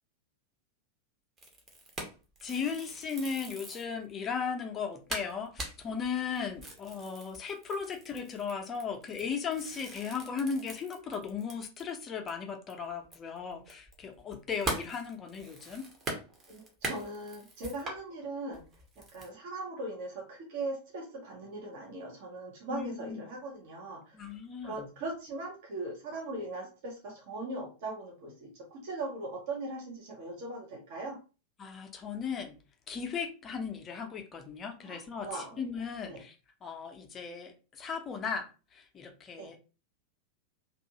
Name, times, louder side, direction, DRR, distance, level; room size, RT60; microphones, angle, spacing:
sound 1, 1.4-3.9 4.4-4.5 4.8-4.9 5.1-12.0 12.3-12.4 12.7-18.0 18.5-19.3, right 2 dB, 20° right, 0.8 m, -41 dB
voice 1, 2.4-15.9 22.7-23.2 24.1-24.9 31.6-32.6 32.9-36.3 36.6-38.5 38.7-39.6, left 6 dB, 25° left, 0.6 m, -36 dB
voice 2, 16.5-18.6 19.0-24.2 24.6-31.2 34.8-35.6 36.0-36.2 39.4-39.5, right 2 dB, 50° right, 0.7 m, -39 dB
2.6 x 2.4 x 2.7 m
figure-of-eight pair, 90°, 0 cm